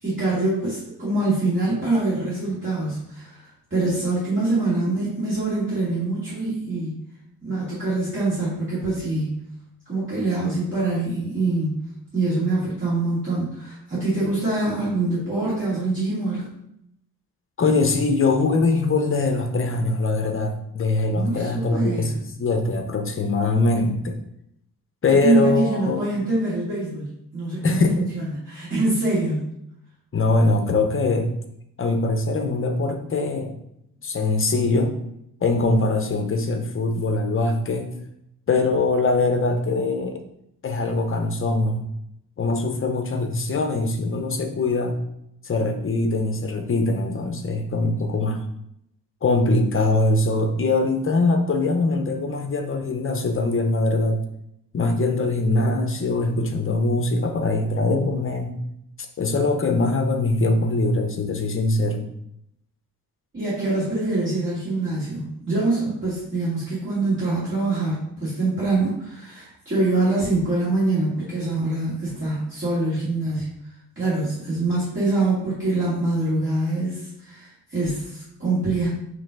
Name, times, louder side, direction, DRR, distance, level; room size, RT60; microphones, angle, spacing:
voice 1, 0.0-3.5 3.7-7.0 7.4-9.4 9.9-11.8 12.1-16.5 21.1-22.1 25.1-29.4 63.3-73.5 74.0-78.9, right 2 dB, 35° right, -10 dB, 2.4 m, -24 dB
voice 2, 17.6-24.2 25.0-26.1 27.6-28.1 30.1-31.3 31.8-33.5 34.0-35.0 35.4-37.9 38.5-40.2 40.6-41.9 42.4-45.0 45.4-48.4 49.2-54.2 54.7-58.6 59.2-62.1, left 3 dB, 35° left, 5 dB, 0.7 m, -22 dB
5.5 x 3.2 x 5.2 m, 0.77 s
wide cardioid pair, 150°, 36 cm